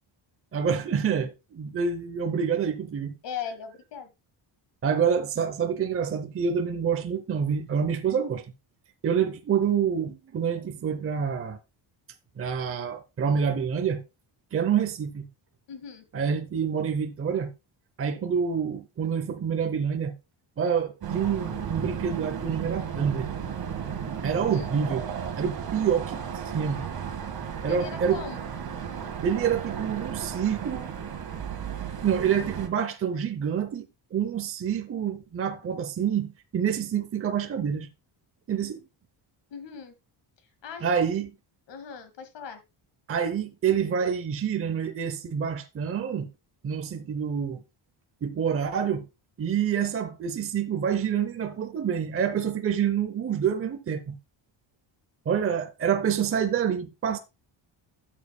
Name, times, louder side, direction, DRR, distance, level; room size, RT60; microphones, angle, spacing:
voice 1, 0.5-3.2 4.8-8.4 9.0-11.6 12.4-14.0 14.5-15.3 16.1-17.5 18.0-20.1 20.6-23.3 24.2-25.1 25.4-26.2 26.5-26.9 27.6-28.2 29.2-30.9 32.0-37.9 38.5-38.8 40.8-41.3 43.1-46.3 46.6-47.6 48.2-49.0 49.4-54.2 55.3-57.2, right 7 dB, 30° right, 0.7 m, -27 dB
voice 2, 3.2-4.1 15.7-16.0 24.4-24.7 27.7-28.5 39.5-39.9 40.6-41.1 41.7-42.6, left 7 dB, 65° left, 1.9 m, -39 dB
sound 1, 21.0-32.7, right 8 dB, 50° right, 1.7 m, -34 dB
12.5 x 7.5 x 2.2 m
cardioid pair, 165°, 47 cm